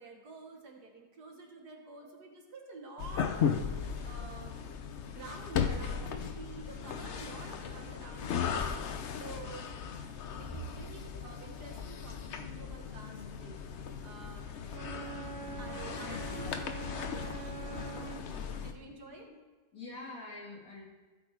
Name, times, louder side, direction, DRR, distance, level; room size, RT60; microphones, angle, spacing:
voice 1, 0.0-3.5 3.8-4.6 5.0-8.7 9.1-9.7 10.4-13.6 14.0-14.8 15.5-16.5 16.9-19.3, right 3 dB, 60° right, 2 dB, 1.7 m, -49 dB
sound 1, 3.0-18.7, left 7 dB, 75° left, 0.6 m, -37 dB
Wind instrument woodwind instrument, 14.7-18.3, right 8 dB, 80° right, 1.4 m, -45 dB
voice 2, 15.9-16.5 16.8-16.9 18.8-18.9 19.3-19.4 19.7-20.8, left 2 dB, 50° left, -3 dB, 2.5 m, -47 dB
15.5 x 5.4 x 4.5 m, 1.3 s
omnidirectional pair, 2.0 m